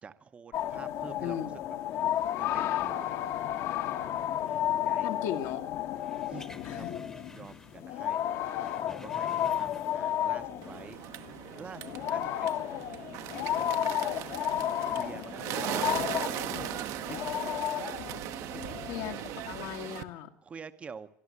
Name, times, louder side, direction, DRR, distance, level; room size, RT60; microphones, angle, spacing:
voice 1, 0.0-1.8 2.1-2.3 2.5-3.4 4.4-5.2 6.3-7.0 7.3-11.0 11.6-12.6 14.8-17.2 20.1-21.1, right 6 dB, 20° right, 12 dB, 0.9 m, -48 dB
sound 1, 0.5-19.9, left 11 dB, 45° left, 1.3 m, -33 dB
voice 2, 1.2-1.5 5.0-5.6 6.6-6.9 18.9-20.3, left 10 dB, 65° left, 3 dB, 1.8 m, -36 dB
sound 2, 6.0-7.9 8.2-10.2 10.5-10.7, left 2 dB, 10° left, 1.2 m, -50 dB
Bird, 10.6-20.0, right 13 dB, 50° right, 1.1 m, -38 dB
23.0 x 13.0 x 9.5 m, 0.67 s
cardioid pair, 180°, 7 cm